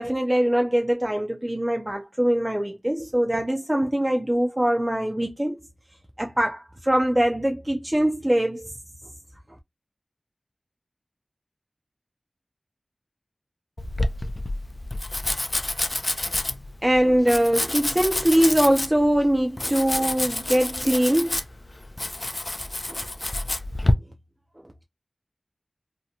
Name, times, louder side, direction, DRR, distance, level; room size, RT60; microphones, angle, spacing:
voice 1, 0.0-5.6 6.2-8.7 16.2-16.3 16.8-21.4 22.9-23.0, right 1 dB, 20° right, 0.4 m, -22 dB
Domestic sounds home sounds, 13.8-23.9, left 1 dB, 45° left, 0.4 m, -28 dB
2.8 x 2.1 x 2.7 m
wide cardioid pair, 50°, 0 cm